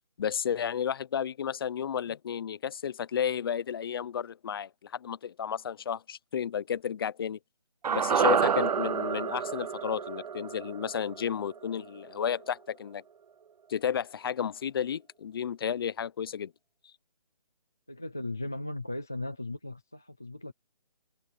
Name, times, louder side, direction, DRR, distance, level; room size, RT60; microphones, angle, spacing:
voice 1, 0.2-7.4 7.9-13.0 13.7-16.5, left 8 dB, 35° left, 1.0 m, -32 dB
sound 1, 7.8-12.2 12.4-12.5, right 7 dB, 70° right, 0.4 m, -29 dB
voice 2, 8.1-8.7 17.9-20.5, left 2 dB, 5° left, 0.3 m, -38 dB
figure-of-eight pair, 155°, 21 cm